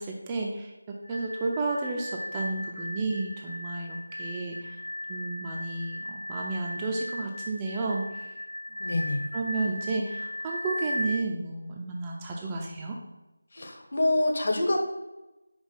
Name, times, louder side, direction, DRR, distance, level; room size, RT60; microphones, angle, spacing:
voice 1, 0.0-4.8 5.1-8.3 9.3-13.0, right 3 dB, 15° right, -1 dB, 0.5 m, -32 dB
sound 1, 1.0-11.2, equal, 70° left, 0.5 m, -37 dB
voice 2, 8.8-9.2 13.5-14.8, left 2 dB, 45° left, 2 dB, 1.1 m, -26 dB
5.2 x 4.3 x 5.6 m, 1.0 s
figure-of-eight pair, 165°, 0 cm